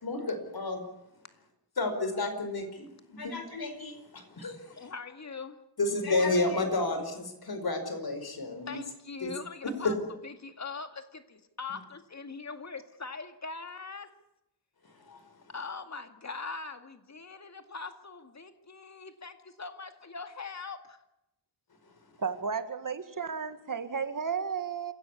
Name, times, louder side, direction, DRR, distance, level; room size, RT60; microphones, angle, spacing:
voice 1, 0.0-0.9 1.8-4.9 5.8-8.8 9.2-9.3 9.6-9.9 15.1-15.2, left 2 dB, 65° left, 4.9 m, -31 dB
voice 2, 4.7-5.6 8.7-9.9 10.2-14.1 15.5-21.0, left 4 dB, 40° left, 2.2 m, -41 dB
voice 3, 22.2-24.9, right 6 dB, 50° right, 1.8 m, -33 dB
28.0 x 16.0 x 8.4 m
wide cardioid pair, 145°, 40 cm